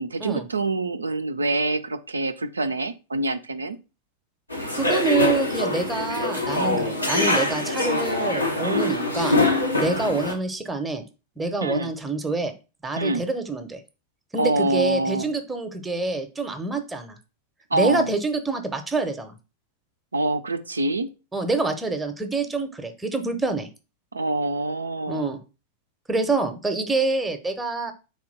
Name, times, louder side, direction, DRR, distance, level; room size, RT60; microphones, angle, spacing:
voice 1, 0.0-3.8 8.6-8.9 11.6-11.9 13.0-13.2 14.4-15.3 17.7-18.1 20.1-21.1 24.1-25.3, right 2 dB, 75° right, 10 dB, 0.3 m, -26 dB
sound 1, 4.5-10.3, left 2 dB, 85° left, 1.0 m, -24 dB
voice 2, 4.7-9.4 9.8-11.0 11.4-12.5 12.8-13.8 14.3-17.2 17.7-19.4 21.3-23.7 25.1-25.4 26.1-27.9, right 3 dB, 10° right, 7 dB, 0.7 m, -26 dB
4.2 x 2.9 x 3.9 m, 0.31 s
figure-of-eight pair, 90°, 0 cm